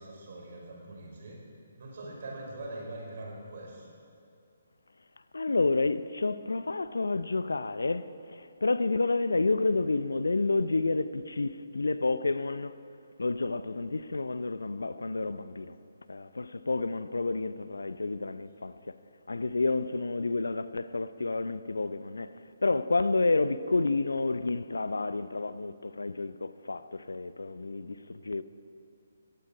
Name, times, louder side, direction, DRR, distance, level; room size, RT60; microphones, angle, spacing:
voice 1, 0.0-1.4 1.8-3.9, right 2 dB, 50° right, 4.6 m, -42 dB
voice 2, 5.3-12.7 13.2-15.8 16.1-19.0 19.3-22.3 22.6-28.4, left 3 dB, 70° left, 0.6 m, -30 dB
18.5 x 15.5 x 4.8 m
figure-of-eight pair, 135°, 0 cm